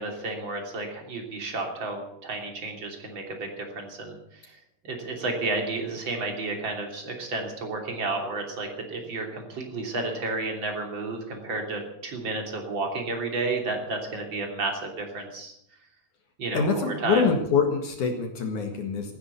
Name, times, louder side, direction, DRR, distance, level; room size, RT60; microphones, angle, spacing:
voice 1, 0.0-4.2 4.8-15.5 16.4-17.2, right 3 dB, 30° right, 2 dB, 2.8 m, -31 dB
voice 2, 16.5-19.2, left 5 dB, 55° left, 3 dB, 2.3 m, -25 dB
16.5 x 9.9 x 8.2 m, 0.76 s
omnidirectional pair, 5.7 m